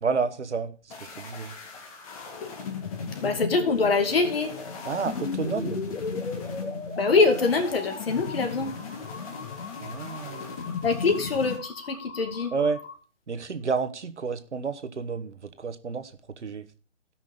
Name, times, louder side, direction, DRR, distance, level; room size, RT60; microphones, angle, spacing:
voice 1, 0.0-1.5 4.8-5.8 9.8-10.5 12.5-12.8 13.3-16.1 16.4-16.7, right 5 dB, 70° right, 1.4 m, -30 dB
sound 1, 0.9-11.6, left 5 dB, 30° left, 2.1 m, -37 dB
voice 2, 3.2-4.5 7.0-8.7 10.8-12.5, left 4 dB, 50° left, 2.4 m, -24 dB
sound 2, 5.1-12.9, left 3 dB, 75° left, 2.9 m, -39 dB
16.5 x 6.1 x 3.7 m
figure-of-eight pair, 145°, 36 cm